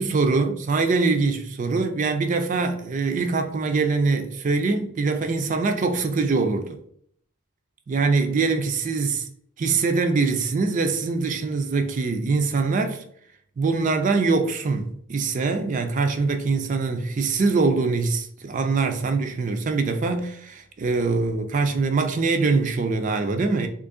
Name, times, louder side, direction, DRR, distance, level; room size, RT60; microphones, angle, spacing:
voice 1, 0.0-6.8 7.9-9.3 9.6-13.0 13.6-23.7, right 4 dB, 35° right, 0.4 m, -23 dB
3.0 x 2.5 x 3.6 m
head